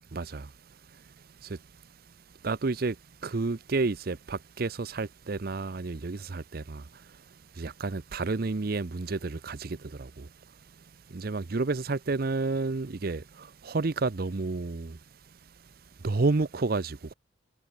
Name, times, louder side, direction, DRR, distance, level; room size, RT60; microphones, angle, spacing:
voice 1, 0.1-1.6 2.3-10.3 10.6-15.0 15.4-15.5 16.0-17.1, right 3 dB, 50° right, 0.6 m, -31 dB
head